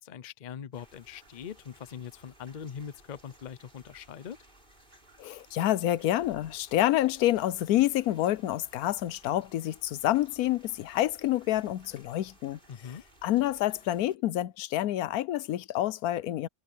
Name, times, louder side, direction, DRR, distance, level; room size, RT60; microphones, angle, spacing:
voice 1, 0.0-4.4 12.7-13.0, left 8 dB, 45° left, 0.6 m, -42 dB
sound 1, 0.7-14.2, right 1 dB, 35° right, 5.7 m, -58 dB
voice 2, 5.2-12.6 13.2-16.5, left 14 dB, 85° left, 1.1 m, -28 dB
omnidirectional pair, 1.5 m